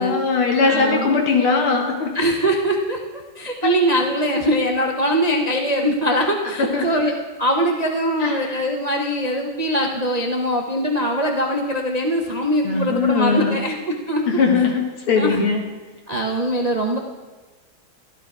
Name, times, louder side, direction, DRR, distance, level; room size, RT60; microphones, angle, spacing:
voice 1, 0.0-2.1 3.6-3.7 6.6-7.0 8.2-8.6 12.6-13.6 14.3-15.6, left 4 dB, 90° left, 2 dB, 2.6 m, -20 dB
voice 2, 0.6-1.2 2.1-3.0 3.4-7.1 7.4-14.2 15.2-15.5 16.1-17.0, equal, 45° right, 1 dB, 0.5 m, -22 dB
13.0 x 12.0 x 4.7 m, 1.2 s
omnidirectional pair, 2.3 m